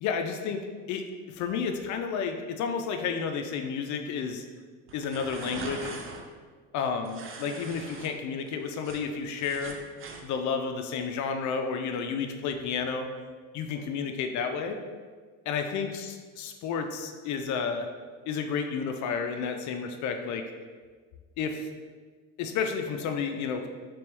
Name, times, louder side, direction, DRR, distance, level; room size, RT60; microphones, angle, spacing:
voice 1, 0.0-4.4 4.9-6.0 6.7-9.8 10.2-13.1 13.5-14.8 15.5-17.9 18.3-20.4 21.4-21.7 22.4-23.7, left 6 dB, 50° left, 5 dB, 0.4 m, -31 dB
sound 1, 4.9-6.2 7.0-8.1 8.5-10.2, right 4 dB, 35° right, 0.5 m, -41 dB
3.4 x 2.9 x 3.4 m, 1.5 s
hypercardioid pair, 75°, 39 cm